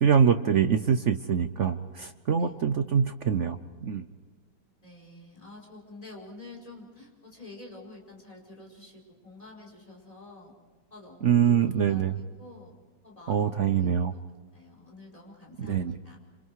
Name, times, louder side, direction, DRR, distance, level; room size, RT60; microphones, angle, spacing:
voice 1, 0.0-4.1 11.2-12.2 13.3-14.1 15.6-16.0, right 7 dB, 70° right, 9 dB, 0.7 m, -24 dB
voice 2, 4.8-10.5 10.9-12.7 13.0-14.2 14.5-16.2, left 2 dB, 15° left, -2 dB, 5.3 m, -48 dB
27.0 x 26.5 x 4.8 m, 1.5 s
omnidirectional pair, 2.2 m